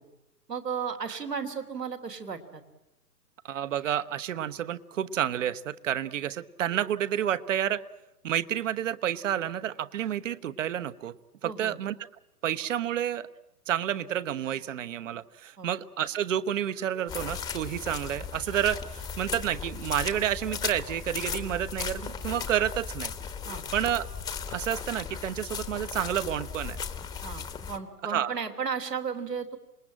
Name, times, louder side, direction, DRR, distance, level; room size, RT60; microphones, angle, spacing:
voice 1, 0.5-2.6 11.4-11.8 15.6-15.7 23.5-23.6 27.2-29.6, right 6 dB, 80° right, 4 dB, 3.4 m, -34 dB
voice 2, 3.4-7.8 8.2-11.1 11.4-11.9 12.4-13.3 13.7-23.1 23.7-24.0 24.5-26.8 28.1-28.3, right 10 dB, 50° right, 12 dB, 1.1 m, -30 dB
sound 1, 17.1-27.8, left 6 dB, 10° left, 1.0 m, -36 dB
27.0 x 20.5 x 8.8 m, 0.96 s
figure-of-eight pair, 120°, 48 cm